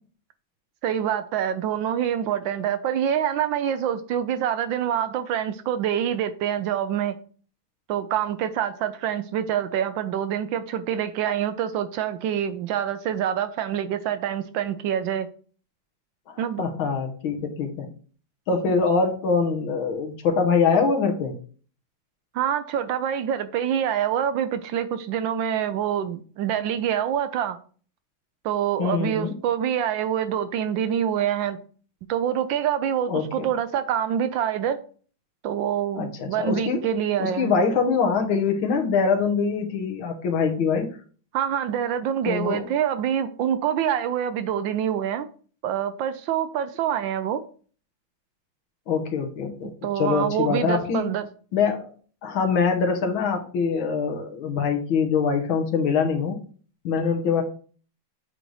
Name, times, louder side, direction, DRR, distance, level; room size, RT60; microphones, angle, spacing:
voice 1, 0.8-7.2 7.9-15.3 16.4-16.6 22.3-27.6 28.4-31.6 32.1-34.8 35.4-37.5 41.3-45.3 45.6-47.4 49.8-51.3, right 9 dB, 75° right, 1.2 m, -26 dB
voice 2, 16.3-17.9 18.5-21.3 28.8-29.3 33.1-33.5 36.0-36.9 37.2-40.9 42.2-42.6 48.9-51.1 51.5-51.9 52.2-56.4 56.8-57.4, left 5 dB, 80° left, 1.8 m, -24 dB
7.6 x 4.0 x 3.2 m
omnidirectional pair, 2.2 m